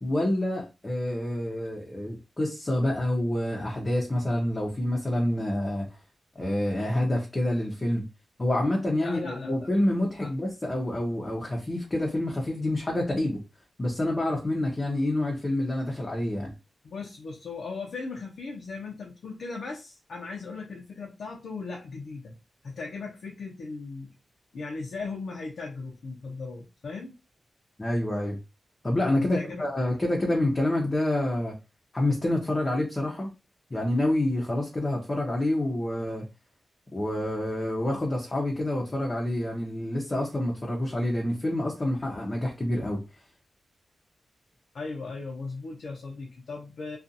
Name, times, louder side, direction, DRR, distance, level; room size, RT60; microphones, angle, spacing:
voice 1, 0.0-5.9 6.4-8.1 8.4-13.4 13.8-16.5 27.8-28.4 28.8-31.5 31.9-33.3 33.7-36.2 36.9-43.0, left 1 dB, 25° left, 0.7 m, -27 dB
voice 2, 8.9-9.7 10.2-10.3 16.8-22.3 22.6-24.1 24.5-27.1 29.2-29.7 44.7-47.0, left 4 dB, 75° left, 0.6 m, -37 dB
2.5 x 2.4 x 2.6 m
wide cardioid pair, 90°, 0 cm